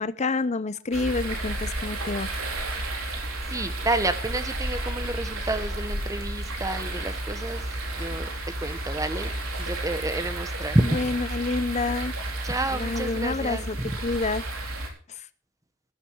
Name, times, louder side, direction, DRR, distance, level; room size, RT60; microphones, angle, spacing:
voice 1, 0.0-2.3 10.8-12.2 12.7-13.8 14.0-14.4 15.1-15.3, left 3 dB, 35° left, 15 dB, 0.6 m, -28 dB
sound 1, 0.9-14.9, right 1 dB, 75° right, 4.2 m, -32 dB
voice 2, 3.5-9.3 9.6-11.0 12.4-14.0, right 2 dB, 15° right, 11 dB, 1.0 m, -29 dB
14.0 x 11.5 x 4.6 m, 0.40 s
head